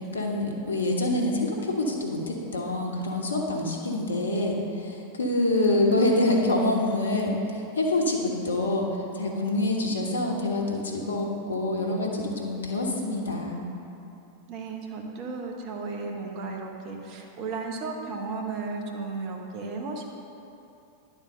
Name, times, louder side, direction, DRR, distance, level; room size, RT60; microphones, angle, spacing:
voice 1, 0.1-13.6, left 2 dB, 70° left, 0 dB, 1.2 m, -26 dB
voice 2, 5.6-6.5 14.5-20.0, right 4 dB, 40° right, 1 dB, 1.1 m, -34 dB
10.5 x 4.3 x 6.4 m, 2.8 s
figure-of-eight pair, 90°, 0 cm